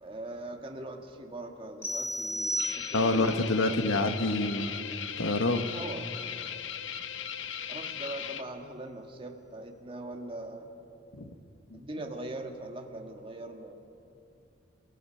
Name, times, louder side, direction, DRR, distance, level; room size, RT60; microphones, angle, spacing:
voice 1, 0.0-3.8 4.2-4.3 5.7-6.1 7.7-10.7 11.7-13.7, right 1 dB, 25° right, 2 dB, 1.7 m, -41 dB
sound 1, 1.8-3.3, equal, 15° left, 2.9 m, -33 dB
sound 2, 2.6-8.4, left 8 dB, 70° left, 0.9 m, -38 dB
voice 2, 2.9-4.7 5.2-5.6 11.1-11.2 11.7-11.8, left 2 dB, 85° left, 7 dB, 1.5 m, -27 dB
30.0 x 16.0 x 5.8 m, 2.7 s
head